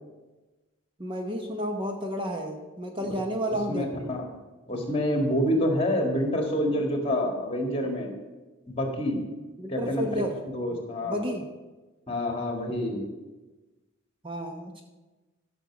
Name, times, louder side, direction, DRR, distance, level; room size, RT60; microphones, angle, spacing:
voice 1, 1.0-4.1 9.6-10.3 11.0-11.4 14.2-14.8, equal, 25° right, 2 dB, 0.8 m, -31 dB
voice 2, 3.7-4.2 4.7-8.2 8.7-9.2 9.7-10.2 10.5-11.2 12.1-13.0, left 1 dB, 30° left, 2 dB, 1.8 m, -27 dB
13.0 x 6.2 x 6.1 m, 1.2 s
head